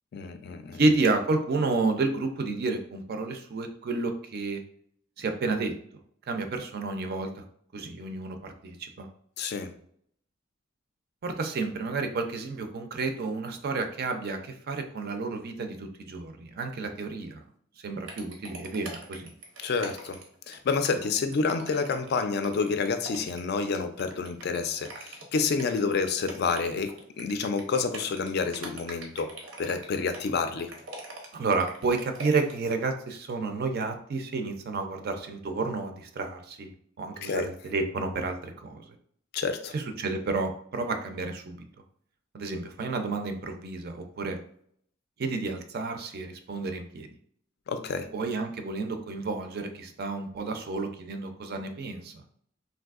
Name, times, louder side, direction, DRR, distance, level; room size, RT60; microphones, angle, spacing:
voice 1, 0.1-0.8 9.4-9.7 19.6-20.2 20.5-29.3 29.6-30.7 37.2-37.4 39.3-39.7 47.7-48.1, left 4 dB, 55° left, 8 dB, 0.3 m, -29 dB
voice 2, 0.7-4.6 5.2-5.7 6.3-7.4 7.7-9.1 11.2-17.4 17.8-19.3 31.3-36.7 37.0-39.0 39.7-41.6 42.3-44.4 45.2-47.1 48.1-52.2, right 3 dB, 55° right, 6 dB, 0.4 m, -30 dB
sound 1, 18.1-32.7, right 2 dB, 85° right, 0.7 m, -43 dB
3.3 x 2.6 x 2.4 m, 0.64 s
head